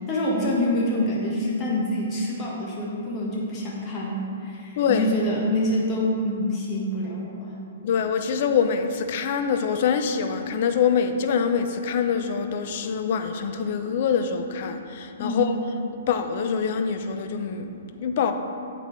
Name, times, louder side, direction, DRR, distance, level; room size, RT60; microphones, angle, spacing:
voice 1, 0.1-7.6 15.2-15.4, left 1 dB, 25° left, -4 dB, 1.4 m, -26 dB
voice 2, 4.8-5.1 7.8-15.6 16.1-18.3, left 6 dB, 50° left, 7 dB, 0.7 m, -25 dB
8.6 x 8.6 x 3.3 m, 2.5 s
figure-of-eight pair, 115°, 0 cm